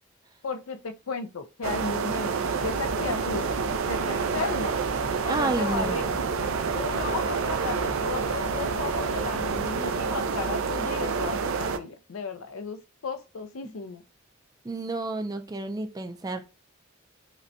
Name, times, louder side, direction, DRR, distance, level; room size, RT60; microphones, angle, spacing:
voice 1, 0.4-3.6 3.9-4.8 5.2-6.1 6.7-14.0, left 4 dB, 90° left, 0.5 m, -34 dB
sound 1, 1.6-11.8, right 5 dB, 85° right, 0.5 m, -28 dB
sound 2, 2.6-10.2, left 1 dB, 35° left, 0.6 m, -42 dB
voice 2, 5.3-6.1 14.6-16.4, right 2 dB, 20° right, 0.4 m, -30 dB
5.1 x 2.2 x 2.7 m
head